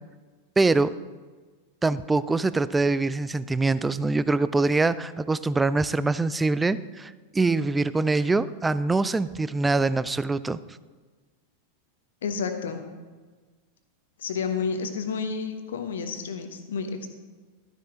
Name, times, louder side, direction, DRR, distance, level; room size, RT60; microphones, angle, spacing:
voice 1, 0.6-0.9 1.8-10.6, right 3 dB, 10° right, 16 dB, 0.4 m, -24 dB
voice 2, 12.2-12.8 14.2-17.1, left 5 dB, 60° left, 6 dB, 1.2 m, -30 dB
13.0 x 9.8 x 3.8 m, 1.4 s
figure-of-eight pair, 90°, 0 cm